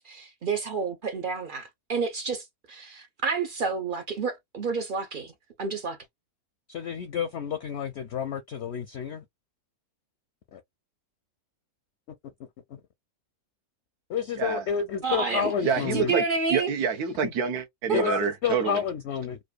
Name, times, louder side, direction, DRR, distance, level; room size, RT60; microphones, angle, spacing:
voice 1, 0.0-5.3 5.6-6.0 15.0-16.7 17.9-18.2, right 4 dB, 60° right, 0.5 m, -30 dB
voice 2, 6.7-9.2 10.5-10.6 12.4-12.8 14.1-16.1 17.2-17.3 17.9-19.4, left 7 dB, 65° left, 0.6 m, -30 dB
voice 3, 15.6-16.2 16.5-18.8, right 6 dB, 75° right, 1.3 m, -27 dB
4.5 x 2.5 x 2.3 m
omnidirectional pair, 1.7 m